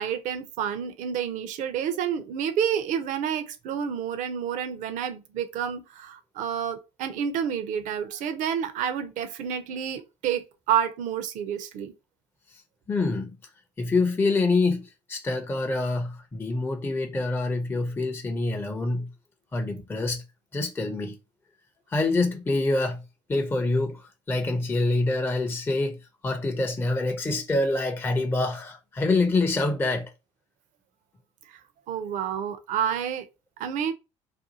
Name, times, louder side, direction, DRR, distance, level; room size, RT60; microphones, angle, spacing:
voice 1, 0.0-11.9 31.5-31.6 31.9-33.3 33.6-33.9, right 8 dB, 55° right, 0.6 m, -29 dB
voice 2, 12.9-13.4 13.8-19.1 19.5-20.2 20.5-21.2 21.9-23.0 23.3-30.1, left 2 dB, 15° left, 0.5 m, -26 dB
2.6 x 2.3 x 2.7 m
hypercardioid pair, 70°, 16 cm